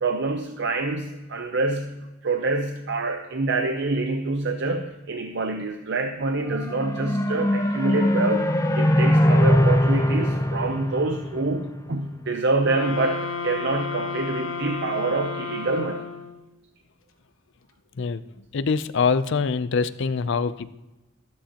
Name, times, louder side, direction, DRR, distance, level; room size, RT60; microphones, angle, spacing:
voice 1, 0.0-1.9 2.2-8.5 8.7-16.1, right 3 dB, 60° right, 6 dB, 0.7 m, -26 dB
sound 1, 6.4-11.9, left 1 dB, 15° left, 0.8 m, -21 dB
sound 2, 12.6-16.5, left 5 dB, 85° left, 1.0 m, -32 dB
voice 2, 18.5-20.7, left 5 dB, 65° left, 14 dB, 0.5 m, -24 dB
13.0 x 12.5 x 2.9 m, 1.1 s
head